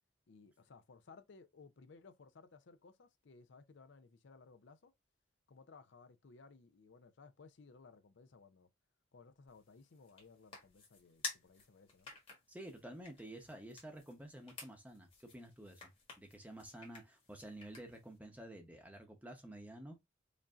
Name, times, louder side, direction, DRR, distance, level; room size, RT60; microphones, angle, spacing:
voice 1, 0.3-4.9 5.5-8.7 9.1-12.1, left 4 dB, 65° left, 0.5 m, -60 dB
sound 1, 9.5-18.2, left 4 dB, 25° left, 1.4 m, -52 dB
voice 2, 12.5-15.9 16.2-20.0, right 1 dB, 10° right, 0.7 m, -51 dB
5.1 x 2.6 x 2.3 m
head